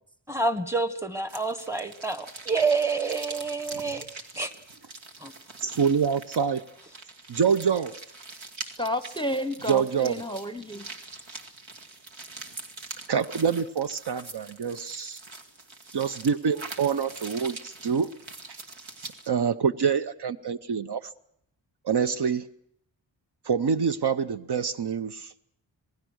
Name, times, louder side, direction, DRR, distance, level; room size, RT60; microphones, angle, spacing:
voice 1, 0.3-4.1 4.4-4.5 5.2-5.3, right 4 dB, 5° right, 11 dB, 1.3 m, -28 dB
sound 1, 1.3-19.3, right 3 dB, 85° right, 2.3 m, -43 dB
voice 2, 5.6-6.6 7.3-8.0 9.7-10.1 13.1-15.2 15.9-18.1 18.5-18.6 19.3-21.1 21.8-22.5 23.5-25.3, right 6 dB, 60° right, 12 dB, 0.8 m, -26 dB
voice 3, 8.8-10.8, equal, 10° left, 12 dB, 0.8 m, -31 dB
27.0 x 19.0 x 6.4 m, 0.72 s
wide cardioid pair, 115°, 46 cm